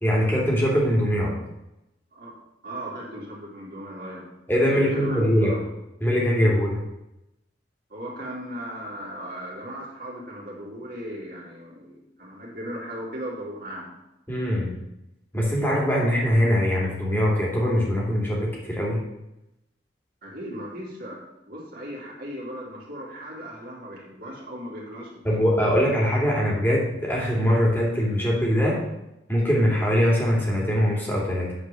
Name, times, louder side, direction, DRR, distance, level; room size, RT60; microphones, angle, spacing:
voice 1, 0.0-1.3 4.5-5.5 6.0-6.8 14.3-14.7 15.3-19.0 25.2-28.8 29.3-31.5, equal, 10° left, -4 dB, 2.7 m, -22 dB
voice 2, 2.6-4.3 4.7-5.6 7.9-13.9 20.2-21.2 21.5-25.4, equal, 50° right, -3 dB, 3.1 m, -37 dB
8.8 x 4.7 x 6.8 m, 0.88 s
head